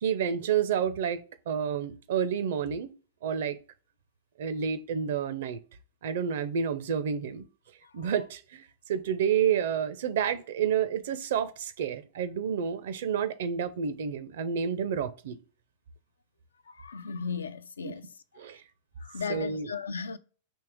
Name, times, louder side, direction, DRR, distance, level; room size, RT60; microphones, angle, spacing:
voice 1, 0.0-2.9 3.2-3.6 4.4-5.6 6.0-7.5 7.9-15.4 17.8-17.9 18.4-18.6 19.3-19.7, right 8 dB, 60° right, 0.5 m, -29 dB
voice 2, 7.8-8.1 16.7-18.1 18.5-18.6 19.0-20.2, left 5 dB, 75° left, 0.3 m, -36 dB
4.5 x 3.0 x 3.5 m
figure-of-eight pair, 95°, 0 cm